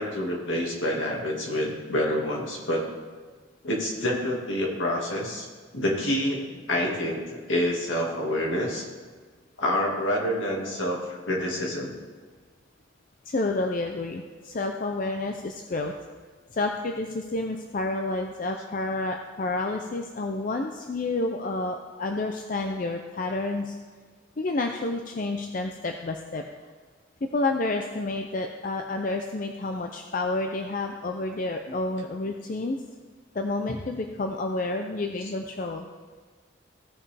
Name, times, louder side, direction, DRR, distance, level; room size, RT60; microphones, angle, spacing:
voice 1, 0.0-2.9 3.6-5.5 5.7-8.9 9.6-12.0 31.7-31.8, left 1 dB, 70° left, -2 dB, 2.0 m, -27 dB
voice 2, 13.3-16.0 16.5-23.8 24.4-26.4 27.2-32.8 33.3-35.9, left 2 dB, 40° left, 4 dB, 0.5 m, -29 dB
16.0 x 5.4 x 3.4 m, 1.5 s
head